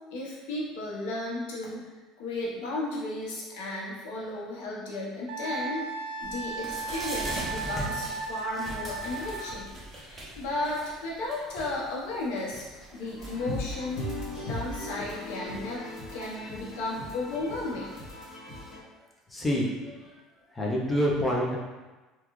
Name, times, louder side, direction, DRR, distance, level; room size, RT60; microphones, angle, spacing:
voice 1, 0.1-1.9 2.2-9.7 10.0-14.1 14.4-17.9, left 2 dB, 85° left, -4 dB, 1.0 m, -34 dB
Wind instrument woodwind instrument, 5.3-9.6, right 4 dB, 80° right, 0.5 m, -35 dB
sound 1, 6.2-18.1, right 1 dB, 15° right, 0.8 m, -42 dB
sound 2, 13.2-18.8, left 1 dB, 45° left, 1.2 m, -38 dB
voice 2, 19.3-20.1 20.5-21.6, equal, 10° left, -3 dB, 0.6 m, -27 dB
3.6 x 2.3 x 3.0 m, 1.2 s
cardioid pair, 145°, 0 cm